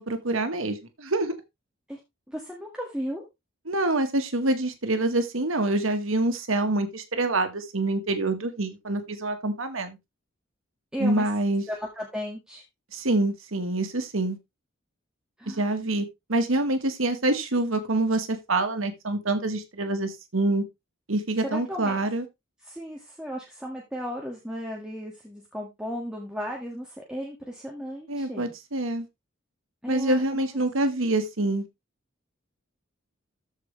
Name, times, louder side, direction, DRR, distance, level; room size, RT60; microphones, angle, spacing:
voice 1, 0.0-1.4 3.7-10.0 11.0-11.6 12.9-14.4 15.5-20.6 21.1-22.2 28.1-29.1 29.9-31.7, right 2 dB, 80° right, 1.6 m, -26 dB
voice 2, 2.3-3.2 10.9-11.3 11.7-12.6 15.4-15.7 21.4-22.0 22.6-28.5 29.8-30.5, equal, 5° right, 1.9 m, -35 dB
14.0 x 5.0 x 3.3 m
head